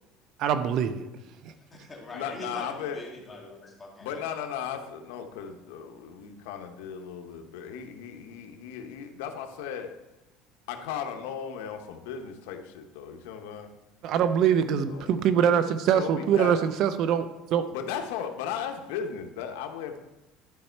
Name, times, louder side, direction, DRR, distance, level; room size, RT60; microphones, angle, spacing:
voice 1, 0.4-1.1 1.4-1.5 14.0-17.7, right 8 dB, 50° right, 11 dB, 0.5 m, -24 dB
voice 2, 1.5-4.3, left 2 dB, 15° left, -2 dB, 2.2 m, -42 dB
voice 3, 2.1-3.0 4.0-9.9 10.7-13.7 14.9-15.1 15.9-16.5 17.7-20.0, left 8 dB, 90° left, 5 dB, 1.0 m, -36 dB
11.5 x 5.3 x 4.5 m, 1.0 s
cardioid pair, 135°, 0 cm